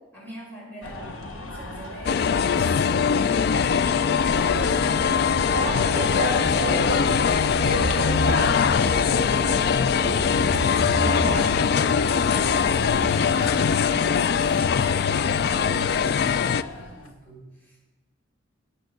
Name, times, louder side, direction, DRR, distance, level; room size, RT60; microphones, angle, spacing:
voice 1, 0.1-4.2 4.7-6.3 7.4-7.7 9.3-10.6 12.6-17.8, right 2 dB, 10° left, -6 dB, 4.8 m, -44 dB
sound 1, 0.8-17.1, left 2 dB, 80° left, 1.3 m, -36 dB
sound 2, 2.1-16.6, left 6 dB, 50° left, 0.3 m, -22 dB
sound 3, 4.1-13.6, right 1 dB, 75° right, 1.0 m, -34 dB
voice 2, 5.5-7.1 7.6-9.5 10.0-10.2 10.5-11.8, right 2 dB, 50° right, 0 dB, 1.8 m, -32 dB
10.5 x 7.7 x 6.4 m, 1.1 s
head